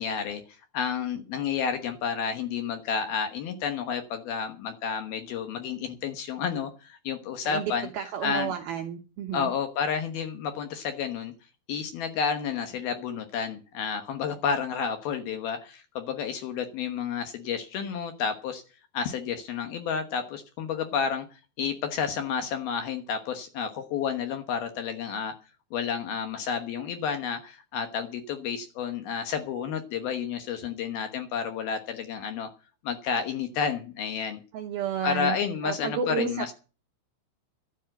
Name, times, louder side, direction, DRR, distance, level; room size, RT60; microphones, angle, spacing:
voice 1, 0.0-7.9 8.2-8.5 9.3-11.3 11.7-18.6 18.9-25.3 25.7-32.5 32.8-34.4 35.0-36.5, left 6 dB, 65° left, 7 dB, 2.6 m, -31 dB
voice 2, 7.4-9.5 34.5-35.4 35.6-36.5, right 8 dB, 75° right, 5 dB, 2.2 m, -31 dB
12.5 x 8.5 x 8.0 m, 0.35 s
omnidirectional pair, 5.6 m